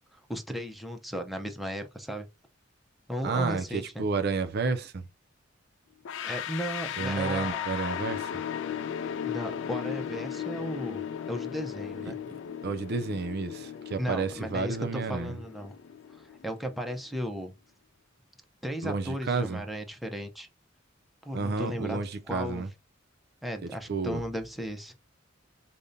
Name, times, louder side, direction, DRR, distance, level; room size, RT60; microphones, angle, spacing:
voice 1, 0.1-2.3 3.1-4.0 6.2-7.8 9.2-12.2 14.0-15.7 16.1-17.6 18.6-20.5 21.2-22.0 22.3-22.6 23.4-24.9, equal, ahead, 0.5 m, -36 dB
voice 2, 3.2-5.1 7.0-8.3 12.0-12.1 12.6-15.4 18.8-19.6 21.3-22.7 23.6-24.2, right 4 dB, 55° right, 0.4 m, -31 dB
sound 1, 6.0-16.9, left 8 dB, 65° left, 0.3 m, -36 dB
5.1 x 2.1 x 2.5 m
head